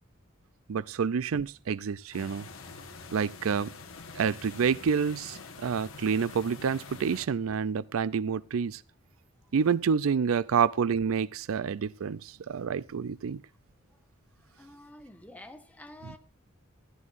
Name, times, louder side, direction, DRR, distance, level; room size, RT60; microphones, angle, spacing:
voice 1, 0.7-2.5 3.1-3.7 4.2-8.8 9.5-13.4 16.0-16.1, right 6 dB, 85° right, 0.4 m, -28 dB
sound 1, 2.1-7.3, left 4 dB, 85° left, 1.5 m, -46 dB
voice 2, 14.4-16.2, left 1 dB, 10° left, 1.2 m, -49 dB
14.5 x 12.5 x 2.5 m
head